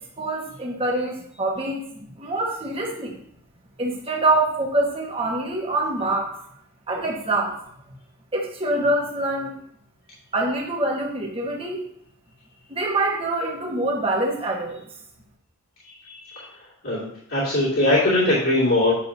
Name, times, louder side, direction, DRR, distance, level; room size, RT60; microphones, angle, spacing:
voice 1, 0.2-3.2 3.8-6.4 6.9-7.6 8.3-9.6 10.3-11.8 12.7-14.8, right 2 dB, 25° right, -1 dB, 1.4 m, -25 dB
voice 2, 15.8-16.4 16.8-18.9, left 1 dB, 60° left, -10 dB, 2.4 m, -21 dB
9.0 x 6.7 x 2.8 m, 0.69 s
head